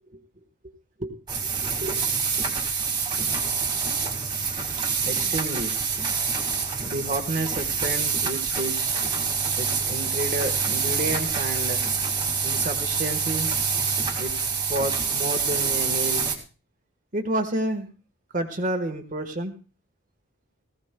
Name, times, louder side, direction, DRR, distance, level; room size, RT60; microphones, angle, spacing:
sound 1, 1.3-16.4, right 5 dB, 20° right, 1.9 m, -26 dB
voice 1, 1.6-2.0 5.0-5.7 6.9-9.0 9.6-11.8 12.4-13.5 14.2-14.3 14.7-16.3 17.1-17.9 18.3-19.5, right 1 dB, 35° right, 5 dB, 1.3 m, -30 dB
19.0 x 15.5 x 2.2 m, 0.35 s
head